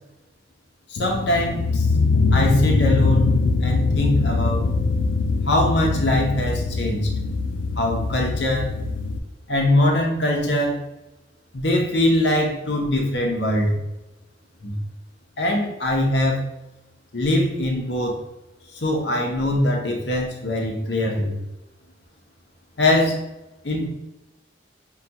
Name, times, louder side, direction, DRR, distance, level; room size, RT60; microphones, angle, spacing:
sound 1, 1.0-9.2, left 3 dB, 90° left, 0.4 m, -22 dB
voice 1, 1.0-1.8 2.3-3.3 3.6-4.6 5.5-7.1 7.8-8.7 9.5-10.8 11.5-13.8 14.6-14.8 15.4-16.4 17.1-18.2 18.8-21.4 22.8-23.2 23.6-23.9, left 1 dB, 65° left, 1 dB, 0.8 m, -22 dB
5.6 x 2.3 x 2.8 m, 0.96 s
head